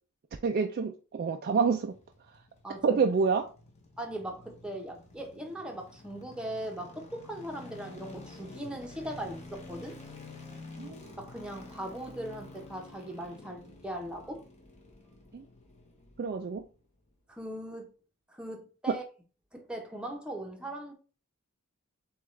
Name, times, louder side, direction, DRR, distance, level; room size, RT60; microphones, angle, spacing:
voice 1, 0.4-2.0 2.8-3.5 10.8-11.1 15.3-15.4 16.2-16.7 18.9-19.0, right 5 dB, 45° right, 0.3 m, -28 dB
sound 1, 1.6-16.8 17.1-17.2, left 2 dB, 30° left, 1.0 m, -50 dB
voice 2, 2.6-3.0 4.0-10.0 11.2-14.4 17.3-17.9 18.3-19.0 19.5-20.9, right 1 dB, 5° right, 0.8 m, -39 dB
6.9 x 2.4 x 3.2 m
head